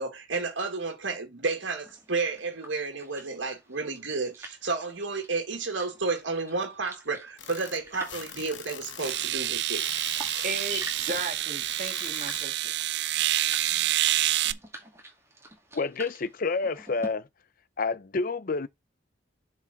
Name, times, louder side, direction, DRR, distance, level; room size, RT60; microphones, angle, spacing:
voice 1, 0.0-9.9 10.7-10.9, right 3 dB, 80° right, 1.8 m, -31 dB
sound 1, 1.8-17.1, right 1 dB, 15° right, 2.3 m, -48 dB
sound 2, 7.4-12.4, left 8 dB, 85° left, 1.4 m, -43 dB
sound 3, 8.1-8.2 9.0-14.5, right 14 dB, 65° right, 0.4 m, -28 dB
voice 2, 10.4-12.7, right 3 dB, 45° right, 1.8 m, -35 dB
voice 3, 15.7-17.3 17.8-18.7, left 4 dB, 50° left, 0.6 m, -29 dB
7.2 x 4.8 x 4.0 m
head